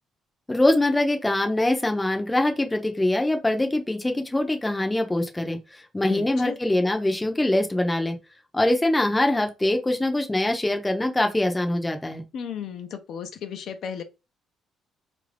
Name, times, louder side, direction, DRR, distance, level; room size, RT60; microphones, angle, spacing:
voice 1, 0.5-8.2 8.5-12.2, left 1 dB, 10° left, 0.6 m, -23 dB
voice 2, 6.0-6.6 12.3-14.0, left 7 dB, 60° left, 0.5 m, -34 dB
4.1 x 2.5 x 3.3 m
cardioid pair, 135°, 0 cm